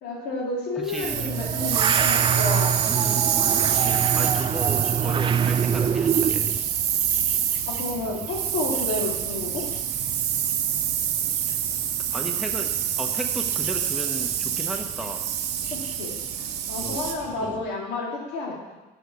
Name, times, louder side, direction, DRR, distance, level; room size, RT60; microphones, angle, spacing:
voice 1, 0.0-2.8 3.8-3.9 7.7-9.6 15.7-18.6, left 3 dB, 85° left, -2 dB, 2.4 m, -31 dB
voice 2, 0.7-1.5 2.9-3.3 4.1-6.6 11.5-11.6 12.1-15.3 16.8-17.0 17.4-17.7, right 1 dB, ahead, 3 dB, 0.9 m, -35 dB
sound 1, 0.9-17.1, right 9 dB, 80° right, 0.9 m, -26 dB
sound 2, 1.0-6.6, right 7 dB, 30° right, 0.4 m, -25 dB
sound 3, 3.7-17.6, right 5 dB, 50° right, 0.9 m, -42 dB
6.3 x 6.3 x 7.0 m, 1.1 s
cardioid pair, 110°, 17 cm